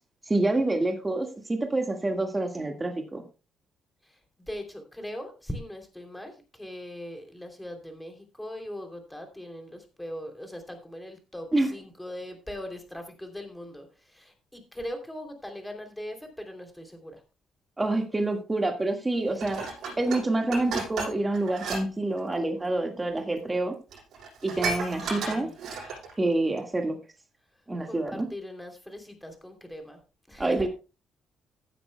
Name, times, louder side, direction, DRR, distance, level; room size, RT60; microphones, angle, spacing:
voice 1, 0.3-3.2 11.5-11.7 17.8-19.7 20.0-23.8 24.4-25.5 26.2-27.0 27.7-28.3 30.4-30.7, right 2 dB, 15° right, 4 dB, 1.7 m, -27 dB
voice 2, 4.0-17.2 25.1-25.6 27.8-30.0 30.3-30.7, left 1 dB, 5° left, 4 dB, 3.0 m, -40 dB
Dishes pots and pans, 19.4-21.8 22.1-22.4 23.2-23.3 23.6-23.7 23.9-26.1 26.6-26.7, right 4 dB, 70° right, 7.3 m, -34 dB
16.0 x 9.7 x 2.2 m, 0.31 s
cardioid pair, 110°, 0 cm